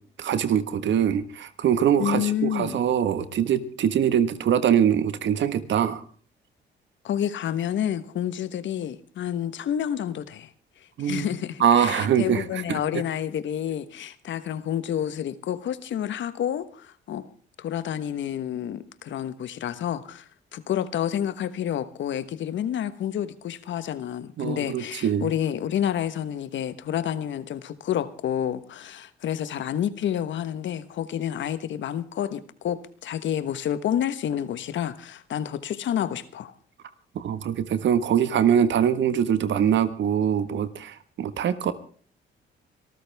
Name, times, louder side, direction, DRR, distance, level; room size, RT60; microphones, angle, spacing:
voice 1, 0.2-6.0 11.0-11.3 11.6-12.8 24.4-25.3 37.1-41.7, right 9 dB, 65° right, 12 dB, 1.6 m, -23 dB
voice 2, 2.0-2.8 7.0-10.5 11.0-17.3 17.6-36.5, left 10 dB, 70° left, 14 dB, 1.3 m, -29 dB
25.5 x 14.0 x 3.5 m, 0.42 s
cardioid pair, 90°, 20 cm